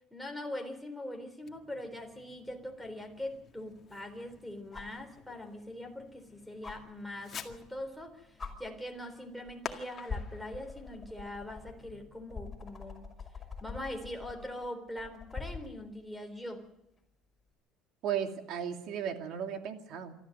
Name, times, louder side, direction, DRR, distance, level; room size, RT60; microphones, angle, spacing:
voice 1, 0.1-8.3 8.6-13.1 13.6-16.7, left 1 dB, ahead, 9 dB, 3.8 m, -42 dB
Fireworks, 1.4-12.1, left 7 dB, 40° left, 2.0 m, -51 dB
sound 1, 2.5-2.6 4.7-5.0 6.6-6.8 7.9-8.0 8.4-8.5 9.4-9.7 10.1-15.7 17.4-17.5, left 4 dB, 20° left, 5.8 m, -43 dB
voice 2, 18.0-20.1, right 8 dB, 65° right, 5 dB, 2.7 m, -35 dB
26.5 x 13.0 x 8.0 m, 0.85 s
cardioid pair, 125°, 0 cm